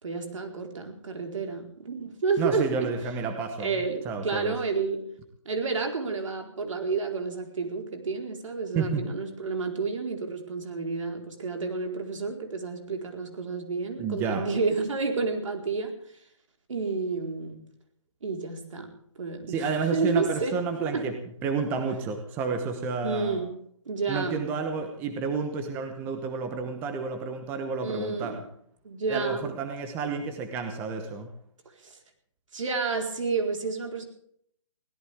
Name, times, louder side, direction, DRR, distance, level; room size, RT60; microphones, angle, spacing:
voice 1, 0.0-2.9 3.6-5.1 5.4-15.9 16.7-17.6 18.2-18.9 19.2-20.6 20.9-21.1 23.0-23.5 23.8-24.5 27.8-28.4 28.8-29.6 31.8-32.0 32.5-34.1, right 4 dB, 70° right, 3 dB, 4.4 m, -30 dB
voice 2, 2.4-3.7 4.0-4.5 8.7-9.1 14.0-14.5 19.5-21.1 21.4-23.4 24.1-28.3 29.1-31.3, right 5 dB, 10° right, 6 dB, 1.1 m, -30 dB
22.5 x 17.0 x 3.6 m, 0.66 s
hypercardioid pair, 165°, 17 cm